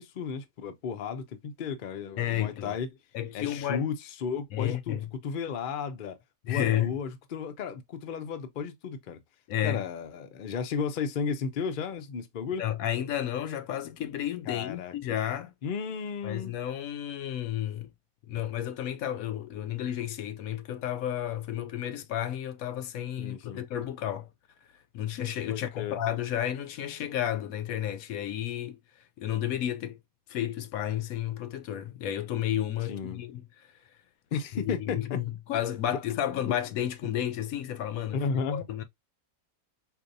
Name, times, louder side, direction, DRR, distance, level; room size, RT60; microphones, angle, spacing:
voice 1, 0.0-2.9 3.3-6.2 6.4-9.2 9.6-12.6 14.5-14.9 15.6-16.6 23.2-23.6 25.5-26.0 32.9-33.2 34.3-35.2 36.3-36.5 38.1-38.7, left 6 dB, 55° left, 0.6 m, -34 dB
voice 2, 2.2-2.8 3.1-3.9 4.5-5.1 6.5-7.0 9.5-9.8 12.6-15.5 16.2-17.9 18.3-24.3 24.9-28.8 29.2-30.0 30.3-33.4 34.5-38.2 38.5-38.8, left 11 dB, 75° left, 1.0 m, -32 dB
4.2 x 2.6 x 2.6 m
omnidirectional pair, 1.5 m